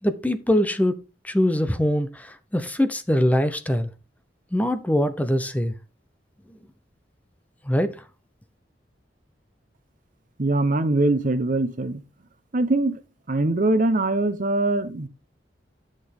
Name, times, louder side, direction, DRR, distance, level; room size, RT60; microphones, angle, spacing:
voice 1, 0.0-1.0 1.2-3.9 4.5-5.7 7.7-8.0, left 1 dB, 10° left, 0.6 m, -23 dB
voice 2, 10.4-12.0 12.5-13.0 13.3-15.1, right 2 dB, 50° right, 0.8 m, -22 dB
10.0 x 6.5 x 3.6 m
head